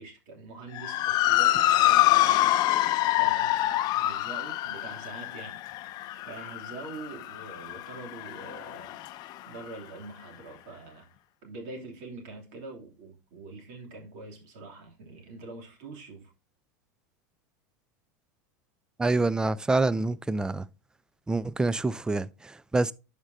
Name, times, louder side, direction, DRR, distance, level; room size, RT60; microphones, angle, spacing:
voice 1, 0.0-2.9 3.2-5.6 6.2-9.0 9.5-11.1 11.4-16.3, right 3 dB, 60° right, 2.8 m, -44 dB
Motor vehicle (road) / Siren, 0.8-9.3, left 15 dB, 45° left, 0.6 m, -26 dB
voice 2, 19.0-20.6 21.3-22.9, right 3 dB, 5° right, 0.4 m, -26 dB
11.0 x 5.1 x 2.7 m
hypercardioid pair, 100°, 10 cm